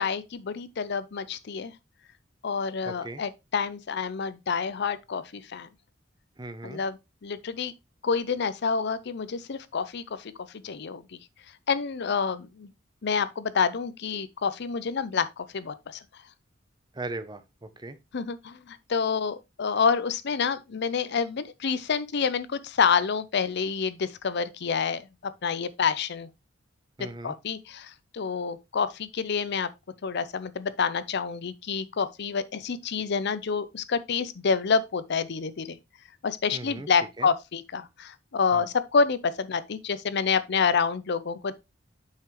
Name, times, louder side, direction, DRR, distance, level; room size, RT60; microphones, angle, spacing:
voice 1, 0.0-1.7 2.4-5.7 6.6-7.7 8.0-11.0 11.7-12.7 13.0-16.0 18.1-26.3 27.2-29.7 30.0-35.8 36.2-41.5, left 5 dB, 60° left, 0.6 m, -28 dB
voice 2, 2.8-3.2 6.4-6.8 16.9-18.0 27.0-27.3 36.5-36.9 37.2-37.3 38.5-38.7, right 2 dB, 20° right, 0.7 m, -38 dB
7.4 x 5.7 x 3.1 m
head